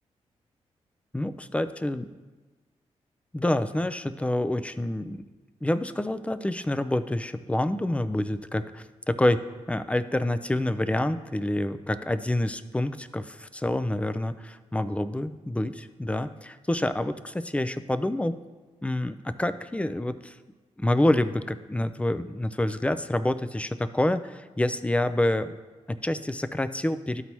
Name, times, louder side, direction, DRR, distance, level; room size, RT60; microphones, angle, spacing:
voice 1, 1.1-2.1 3.3-5.2 5.6-18.4 18.8-20.4 20.8-25.5 25.9-27.2, left 1 dB, 10° left, 11 dB, 0.4 m, -27 dB
12.0 x 4.1 x 3.0 m, 1.3 s
supercardioid pair, 45°, 13 cm